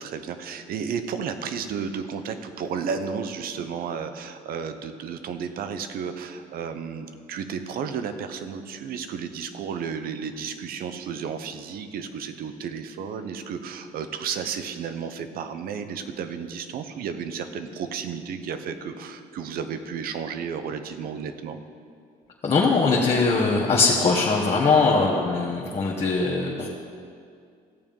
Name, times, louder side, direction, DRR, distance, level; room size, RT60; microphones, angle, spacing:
voice 1, 0.0-21.6 24.9-25.2, right 6 dB, 70° right, 9 dB, 0.9 m, -33 dB
voice 2, 22.4-26.7, left 4 dB, 40° left, -4 dB, 1.6 m, -21 dB
15.5 x 7.1 x 5.4 m, 2.2 s
cardioid pair, 100°, 16 cm